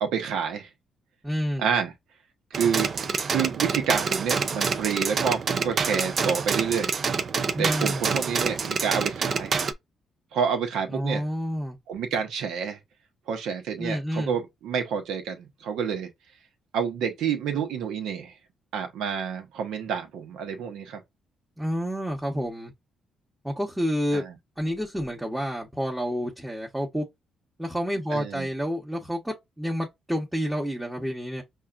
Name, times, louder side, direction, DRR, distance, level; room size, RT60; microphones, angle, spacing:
voice 1, 0.0-0.7 1.6-1.9 2.5-2.9 3.2-6.9 7.6-9.6 10.3-11.3 11.9-12.8 13.3-16.1 16.7-18.3 18.7-21.0 24.1-24.2 28.1-28.5, right 7 dB, 85° right, 1.0 m, -28 dB
voice 2, 1.2-1.7 7.5-8.0 10.9-11.8 13.8-14.4 21.6-22.7 23.4-24.2 24.6-27.1 27.6-31.4, equal, 5° right, 1.0 m, -29 dB
sound 1, 2.5-9.7, right 5 dB, 45° right, 0.5 m, -27 dB
5.5 x 2.5 x 2.4 m
cardioid pair, 90°, 0 cm